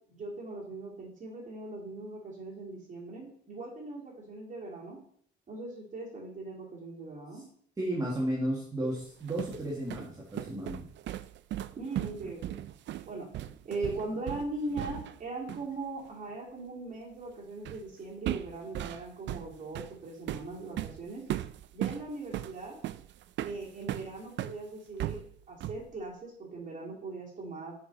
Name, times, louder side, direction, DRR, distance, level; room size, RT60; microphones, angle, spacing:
voice 1, 0.1-5.0 5.5-7.4 11.8-12.6 13.1-21.3 21.7-22.8 23.4-27.8, right 2 dB, 40° right, -5 dB, 2.7 m, -40 dB
voice 2, 7.8-10.9, right 1 dB, 20° right, -3 dB, 1.8 m, -33 dB
sound 1, 9.0-15.2 15.5-15.7 17.6-17.9 18.2-24.6 25.0-25.9, right 13 dB, 65° right, 0.4 m, -37 dB
6.8 x 5.3 x 4.0 m, 0.62 s
cardioid pair, 90°, 20 cm